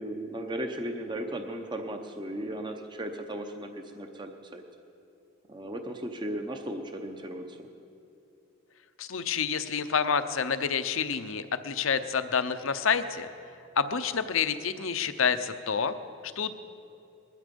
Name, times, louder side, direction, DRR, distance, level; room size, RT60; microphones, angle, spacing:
voice 1, 0.0-4.6 5.5-7.7, right 1 dB, 20° right, 5 dB, 0.8 m, -36 dB
voice 2, 9.0-13.3 13.8-15.9 16.4-16.5, left 6 dB, 70° left, 11 dB, 0.7 m, -28 dB
20.5 x 12.5 x 5.3 m, 2.7 s
head